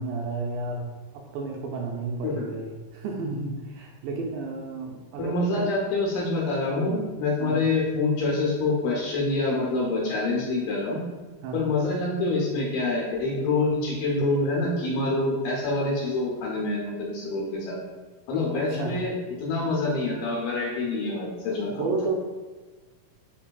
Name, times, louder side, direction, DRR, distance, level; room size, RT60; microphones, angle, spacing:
voice 1, 0.0-5.7 7.4-7.6 11.4-11.6 18.5-19.0 21.7-22.1, right 3 dB, 80° right, 0 dB, 2.1 m, -32 dB
voice 2, 5.2-11.0 11.5-17.8 18.3-19.1 19.4-21.9, left 2 dB, 75° left, -3 dB, 2.3 m, -26 dB
6.0 x 3.2 x 2.3 m, 1.2 s
omnidirectional pair, 4.2 m